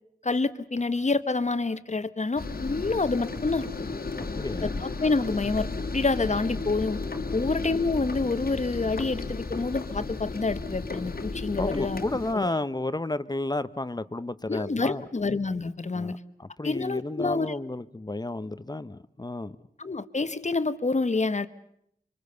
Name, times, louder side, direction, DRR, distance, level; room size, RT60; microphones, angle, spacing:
voice 1, 0.2-3.7 4.6-7.0 7.3-12.0 12.3-12.5 14.5-16.2 16.6-17.6 19.8-21.5, left 3 dB, 45° left, 12 dB, 1.3 m, -28 dB
sound 1, 2.4-12.3, left 3 dB, 70° left, 2.0 m, -34 dB
voice 2, 4.2-4.8 7.3-7.5 11.5-15.1 15.9-19.6, left 2 dB, 25° left, 14 dB, 1.0 m, -32 dB
25.5 x 25.0 x 6.9 m, 0.71 s
cardioid pair, 55°, 16 cm